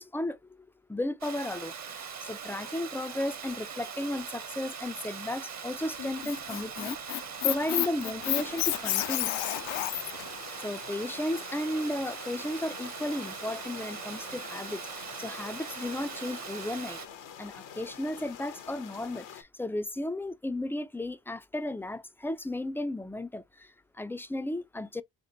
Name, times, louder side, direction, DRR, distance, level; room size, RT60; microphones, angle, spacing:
voice 1, 0.0-9.3 10.6-17.0 17.4-25.0, left 1 dB, 5° left, 0.4 m, -34 dB
Water, 1.2-17.1, right 6 dB, 40° right, 0.9 m, -41 dB
Squeak, 6.0-10.2, left 15 dB, 65° left, 0.5 m, -30 dB
sound 1, 8.2-19.4, left 8 dB, 85° left, 1.1 m, -46 dB
5.1 x 2.1 x 3.9 m
supercardioid pair, 65°, 44 cm